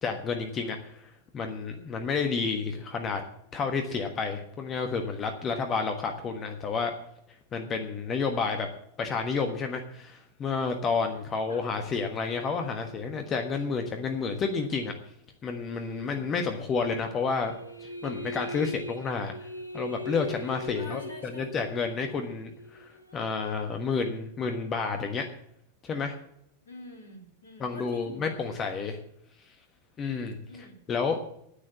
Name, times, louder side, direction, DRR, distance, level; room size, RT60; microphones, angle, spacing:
voice 1, 0.0-3.2 3.5-6.9 7.5-8.7 9.0-14.9 15.4-17.5 17.8-19.3 19.7-25.3 25.8-26.1 27.6-29.0 30.0-30.4 30.9-31.3, left 5 dB, 25° left, 5 dB, 1.3 m, -30 dB
voice 2, 15.8-16.3 20.7-21.5 26.6-28.2 28.5-28.7 30.4-30.8, left 2 dB, 70° left, 2 dB, 3.2 m, -47 dB
sound 1, 17.4-23.3, left 1 dB, 85° right, 0.9 m, -40 dB
10.0 x 9.2 x 8.3 m, 0.73 s
figure-of-eight pair, 90°, 0 cm